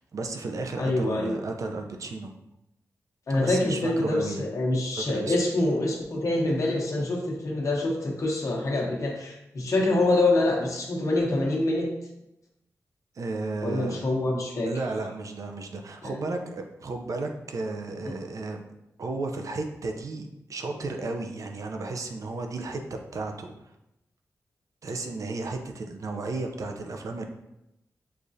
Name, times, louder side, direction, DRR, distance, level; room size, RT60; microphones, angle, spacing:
voice 1, 0.0-2.3 3.3-4.5 4.9-5.3 13.2-14.0 14.7-18.6 19.0-23.5 24.8-27.3, right 3 dB, 65° right, 4 dB, 0.5 m, -33 dB
voice 2, 0.8-1.4 3.3-11.9 13.6-14.7 16.0-16.2, left 2 dB, 60° left, -1 dB, 1.0 m, -25 dB
6.6 x 2.4 x 2.7 m, 0.88 s
wide cardioid pair, 80°, 6 cm